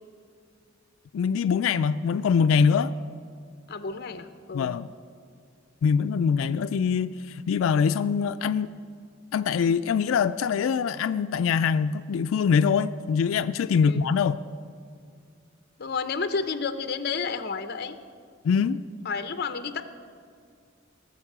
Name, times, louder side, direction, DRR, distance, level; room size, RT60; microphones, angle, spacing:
voice 1, 1.1-2.9 4.5-4.9 5.8-8.7 9.3-14.4 18.4-18.8, left 6 dB, 90° left, 13 dB, 0.3 m, -23 dB
voice 2, 3.7-4.8 13.7-14.0 15.8-18.0 19.0-19.8, left 5 dB, 55° left, 9 dB, 0.7 m, -31 dB
18.5 x 7.3 x 6.1 m, 2.2 s
head